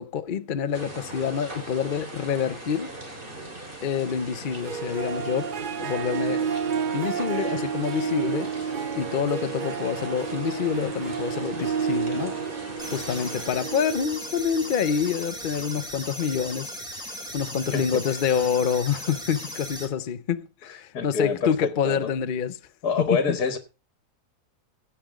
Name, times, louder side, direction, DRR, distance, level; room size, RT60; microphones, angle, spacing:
voice 1, 0.0-2.9 3.8-5.5 5.8-6.5 6.9-12.4 12.9-16.8 17.1-22.6 23.0-23.4, left 7 dB, 45° left, 0.7 m, -27 dB
sound 1, 0.7-13.4, right 1 dB, 30° right, 3.4 m, -39 dB
Harp, 4.5-15.7, right 7 dB, 85° right, 0.4 m, -31 dB
sound 2, 12.8-19.8, equal, ahead, 4.4 m, -37 dB
voice 2, 20.7-22.1 22.8-23.6, left 4 dB, 70° left, 1.9 m, -26 dB
16.5 x 6.0 x 4.9 m
omnidirectional pair, 1.7 m